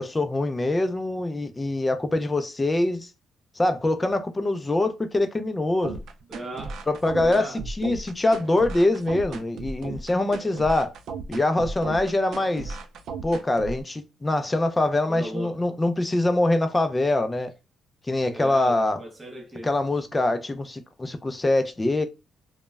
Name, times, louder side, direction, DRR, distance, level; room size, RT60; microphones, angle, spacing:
voice 1, 0.0-3.1 3.6-6.0 6.9-10.9 11.3-12.8 13.2-17.5 18.1-19.0 19.6-22.1, left 2 dB, 15° left, 0.3 m, -24 dB
sound 1, 5.8-13.8, right 4 dB, 65° right, 0.3 m, -35 dB
voice 2, 6.3-6.8 7.1-7.6 15.1-15.7 18.3-19.7, right 1 dB, 15° right, 0.7 m, -37 dB
2.0 x 2.0 x 3.3 m
cardioid pair, 170°, 0 cm